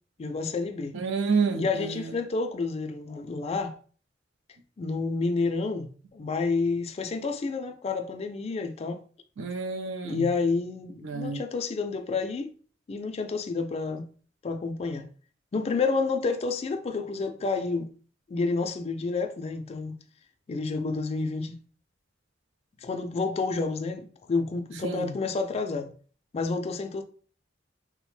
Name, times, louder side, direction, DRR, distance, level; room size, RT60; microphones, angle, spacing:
voice 1, 0.2-1.0 1.5-3.8 4.8-9.0 10.0-12.5 12.9-14.1 14.4-15.1 15.5-17.9 18.3-19.9 20.5-21.6 22.8-25.9 26.3-27.0, left 4 dB, 35° left, 0.3 m, -29 dB
voice 2, 0.9-2.0 9.4-10.3 11.0-11.4 24.8-25.1, right 4 dB, 90° right, 0.4 m, -29 dB
3.3 x 2.1 x 3.1 m
head